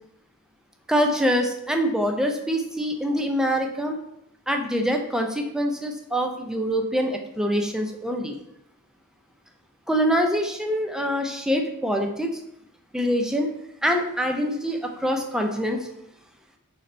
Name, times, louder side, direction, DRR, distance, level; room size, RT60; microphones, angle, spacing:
voice 1, 0.9-4.0 4.5-8.4 9.9-12.3 12.9-13.5 13.8-15.9, equal, 5° right, 3 dB, 0.4 m, -24 dB
3.9 x 3.1 x 4.2 m, 0.80 s
head